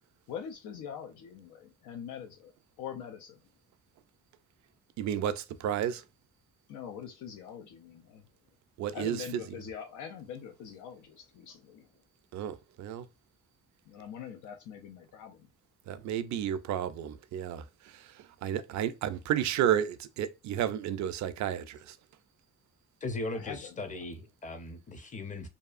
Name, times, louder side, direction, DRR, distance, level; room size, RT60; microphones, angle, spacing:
voice 1, 0.3-2.5 2.8-3.4 6.7-8.2 8.9-11.9 13.9-15.5 23.3-23.7, left 8 dB, 85° left, 0.5 m, -43 dB
voice 2, 5.0-6.0 8.8-9.4 12.3-13.1 15.9-22.0, right 10 dB, 70° right, 0.4 m, -32 dB
voice 3, 23.0-25.5, left 2 dB, 25° left, 0.6 m, -38 dB
2.7 x 2.3 x 2.4 m
cardioid pair, 90°, 30 cm